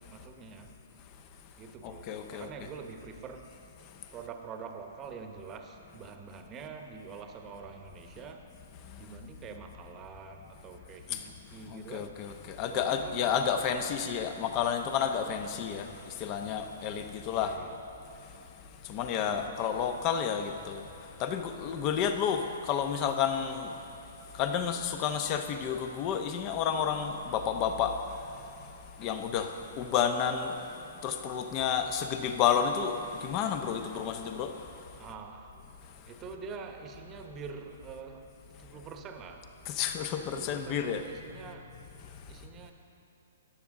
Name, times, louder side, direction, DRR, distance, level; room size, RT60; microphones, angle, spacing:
voice 1, 0.1-0.7 1.6-3.5 4.1-8.5 9.0-12.2 12.7-14.0 17.3-17.8 19.1-19.5 35.0-35.5 36.1-38.3 38.6-39.5 40.2-41.7 42.3-42.7, right 5 dB, 25° right, 5 dB, 1.0 m, -45 dB
voice 2, 1.8-2.5 11.1-11.2 11.7-17.6 18.8-20.9 21.2-23.7 24.3-28.2 29.0-30.6 31.0-34.7 39.7-41.0, left 8 dB, 35° left, 7 dB, 0.8 m, -31 dB
14.5 x 10.5 x 3.7 m, 2.9 s
figure-of-eight pair, 120°, 0 cm